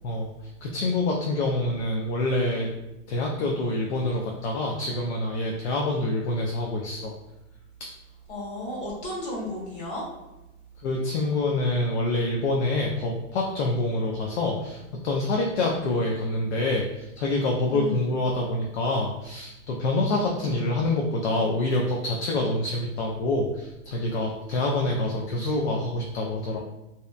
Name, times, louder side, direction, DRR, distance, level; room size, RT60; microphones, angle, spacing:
voice 1, 0.6-2.7 3.1-7.1 7.8-7.9 10.8-26.6, left 2 dB, 60° left, 0 dB, 0.5 m, -26 dB
voice 2, 8.3-10.1 17.7-18.0 24.8-25.1, left 1 dB, 45° left, -5 dB, 1.5 m, -34 dB
2.7 x 2.1 x 2.4 m, 0.97 s
hypercardioid pair, 150°, 38 cm